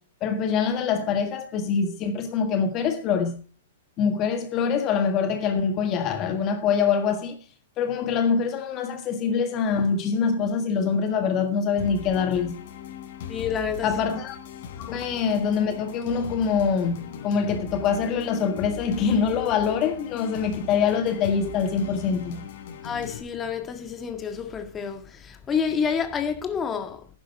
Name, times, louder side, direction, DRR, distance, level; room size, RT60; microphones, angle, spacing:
voice 1, 0.2-3.4 4.0-7.4 7.8-12.7 13.8-14.4 14.8-22.4, left 6 dB, 35° left, 1.6 m, -24 dB
sound 1, 11.8-23.2, left 8 dB, 60° left, 3.7 m, -39 dB
voice 2, 13.3-14.0 22.8-27.1, left 6 dB, 20° left, 1.8 m, -29 dB
11.0 x 10.5 x 4.3 m
hypercardioid pair, 125°, 0 cm